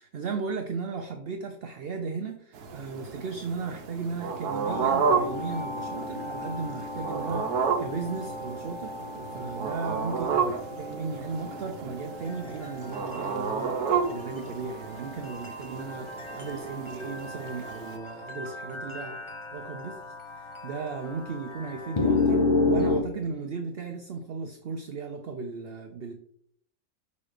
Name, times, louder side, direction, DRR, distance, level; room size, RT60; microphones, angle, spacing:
voice 1, 0.0-19.2 19.5-26.1, right 4 dB, 55° right, 4 dB, 0.6 m, -36 dB
sound 1, 2.5-18.0, right 6 dB, 85° right, 1.3 m, -32 dB
sound 2, 4.7-23.0, left 3 dB, 25° left, 0.6 m, -33 dB
6.0 x 4.1 x 4.9 m, 0.68 s
omnidirectional pair, 1.6 m